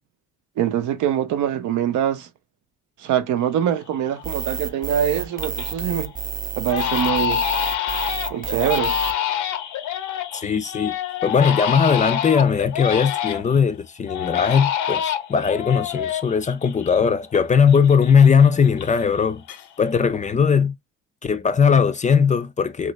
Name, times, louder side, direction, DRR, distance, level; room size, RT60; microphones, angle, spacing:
voice 1, 0.6-2.3 3.0-6.1 6.6-7.5 8.3-9.0, right 10 dB, 80° right, 0.6 m, -23 dB
Crying sobbing, 3.5-3.6 4.1-4.5 4.9-5.8 6.1-6.2 6.7-13.6 14.1-17.4 17.7-19.2 19.5-20.0, left 10 dB, 80° left, 0.6 m, -27 dB
sound 1, 4.2-9.1, right 6 dB, 30° right, 0.5 m, -30 dB
voice 2, 10.4-10.9 11.2-19.4 19.8-20.7 21.2-22.9, left 6 dB, 25° left, 0.3 m, -19 dB
3.1 x 2.5 x 3.0 m
cardioid pair, 90°, 30 cm